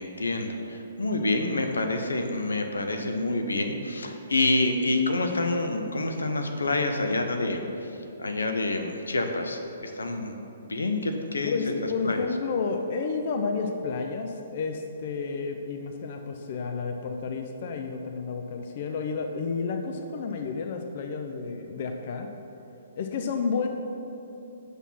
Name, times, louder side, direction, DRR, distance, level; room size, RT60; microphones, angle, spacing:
voice 1, 0.0-10.3 10.6-12.2, left 2 dB, 85° left, 5 dB, 0.8 m, -28 dB
voice 2, 11.4-22.3 23.0-23.7, left 4 dB, 50° left, 5 dB, 0.5 m, -31 dB
6.3 x 5.4 x 5.8 m, 2.9 s
hypercardioid pair, 135°, 0 cm